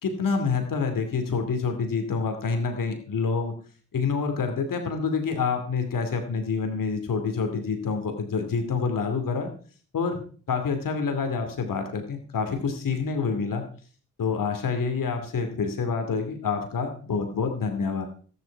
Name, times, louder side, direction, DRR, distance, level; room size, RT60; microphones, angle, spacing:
voice 1, 0.0-3.5 3.9-9.5 9.9-13.6 14.2-18.0, left 5 dB, 85° left, 6 dB, 2.6 m, -27 dB
13.5 x 11.5 x 4.6 m, 0.43 s
supercardioid pair, 40°, 32 cm